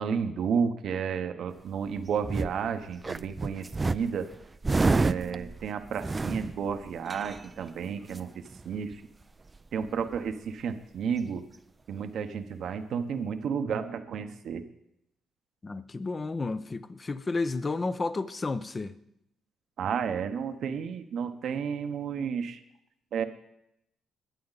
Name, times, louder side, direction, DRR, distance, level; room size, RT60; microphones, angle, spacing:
voice 1, 0.0-4.3 4.9-8.3 8.6-9.0 9.7-11.4 11.9-14.6 19.8-22.6 23.1-23.2, right 6 dB, 70° right, 0.9 m, -32 dB
sound 1, 1.7-2.7 3.0-7.7 8.1-8.2 8.5-8.9 9.2-9.3 9.5-10.3 11.2-11.3, right 3 dB, 25° right, 0.4 m, -30 dB
voice 2, 15.6-18.9, left 3 dB, 30° left, 0.7 m, -32 dB
21.0 x 8.6 x 4.0 m
cardioid pair, 90°, 0 cm